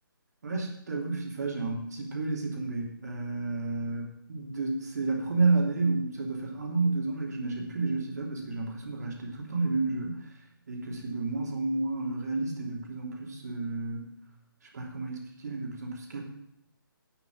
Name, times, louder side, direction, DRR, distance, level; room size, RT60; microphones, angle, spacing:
voice 1, 0.4-10.3 10.7-14.1 14.7-16.2, right 3 dB, 50° right, 0 dB, 3.0 m, -31 dB
9.0 x 7.3 x 8.9 m, 0.77 s
figure-of-eight pair, 140°, 12 cm